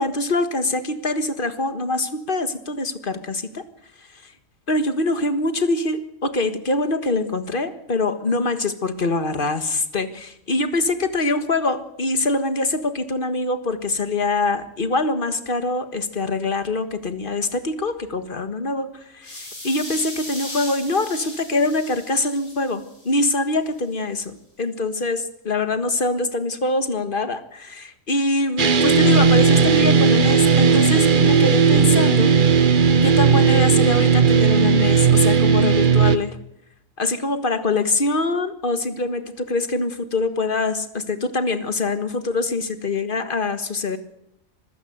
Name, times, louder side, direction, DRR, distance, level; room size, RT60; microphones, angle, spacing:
voice 1, 0.0-3.6 4.7-32.3 33.0-36.4 37.0-44.0, left 2 dB, 40° left, 10 dB, 1.7 m, -24 dB
sound 1, 19.2-23.3, left 1 dB, 90° left, 7.4 m, -37 dB
sound 2, 28.6-36.2, right 6 dB, 40° right, 1.0 m, -16 dB
25.5 x 15.5 x 8.0 m, 0.78 s
omnidirectional pair, 1.4 m